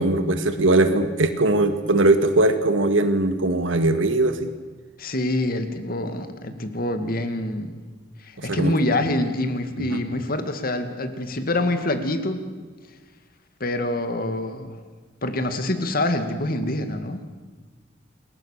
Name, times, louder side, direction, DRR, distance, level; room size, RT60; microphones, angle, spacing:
voice 1, 0.0-4.5 8.4-8.7 9.9-10.0, right 2 dB, 85° right, 7 dB, 2.1 m, -20 dB
voice 2, 5.0-7.8 8.2-12.4 13.6-14.8 15.2-17.2, left 1 dB, 50° left, 7 dB, 2.4 m, -26 dB
28.5 x 22.0 x 6.8 m, 1.4 s
head